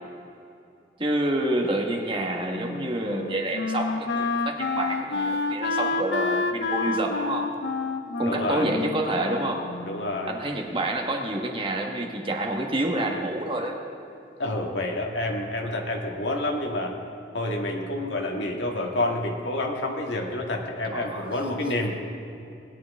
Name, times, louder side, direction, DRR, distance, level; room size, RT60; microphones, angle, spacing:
voice 1, 1.0-7.5 8.2-9.7 10.3-13.8 20.9-21.3, right 1 dB, 30° right, 1 dB, 1.3 m, -28 dB
Wind instrument woodwind instrument, 2.5-10.3, left 3 dB, 65° left, 0.6 m, -29 dB
voice 2, 8.3-8.7 9.8-10.4 14.4-16.9 17.3-22.0, left 1 dB, 80° left, 1 dB, 1.7 m, -28 dB
19.5 x 10.5 x 3.6 m, 2.6 s
head